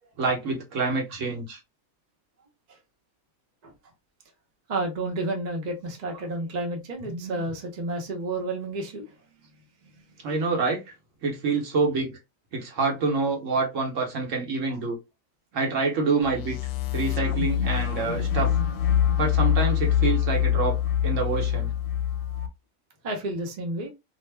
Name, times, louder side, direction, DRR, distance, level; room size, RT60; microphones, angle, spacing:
voice 1, 0.2-1.6 10.2-10.8 11.2-12.2 12.5-15.0 15.5-16.6 16.9-18.5 19.2-20.8 21.0-21.7, right 4 dB, 65° right, 1.1 m, -26 dB
voice 2, 4.7-9.1 9.8-10.2 23.0-23.9, right 2 dB, 40° right, 0.7 m, -31 dB
sound 1, 16.2-22.5, left 10 dB, 70° left, 0.9 m, -24 dB
2.7 x 2.0 x 3.2 m
omnidirectional pair, 1.5 m